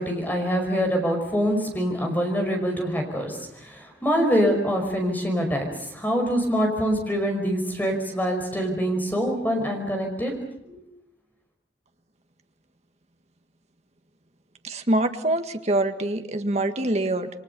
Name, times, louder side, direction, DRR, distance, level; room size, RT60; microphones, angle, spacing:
voice 1, 0.0-10.3 10.6-10.8, equal, 10° left, 3 dB, 5.3 m, -25 dB
voice 2, 14.6-17.3, right 1 dB, 35° right, 7 dB, 1.7 m, -24 dB
28.5 x 23.5 x 6.9 m, 0.80 s
head